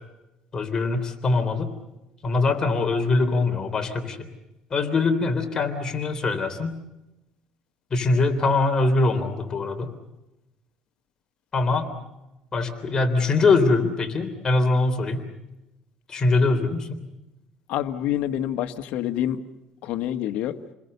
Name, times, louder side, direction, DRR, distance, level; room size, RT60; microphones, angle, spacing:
voice 1, 0.5-1.7 2.2-4.3 4.7-6.7 7.9-9.9 11.5-11.9 12.5-15.2 16.1-17.0, left 3 dB, 30° left, 5 dB, 3.5 m, -22 dB
voice 2, 17.7-19.4 19.8-20.5, left 11 dB, 75° left, 7 dB, 1.6 m, -27 dB
29.0 x 21.0 x 6.8 m, 0.95 s
cardioid pair, 130°, 2 cm